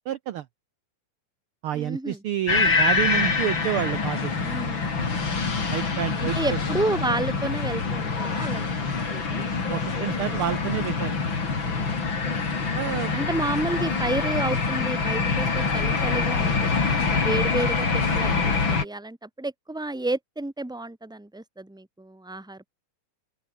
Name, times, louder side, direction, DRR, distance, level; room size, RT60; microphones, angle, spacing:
voice 1, 0.1-0.4 1.6-4.3 5.7-6.4 9.7-11.2 12.8-13.1, right 12 dB, 70° right, 1.3 m, -29 dB
voice 2, 1.7-2.2 4.4-4.9 6.2-9.5 11.6-12.0 13.1-22.7, right 2 dB, ahead, 2.2 m, -31 dB
sound 1, 2.5-18.9, left 4 dB, 40° left, 4.1 m, -25 dB
open air
omnidirectional pair, 3.4 m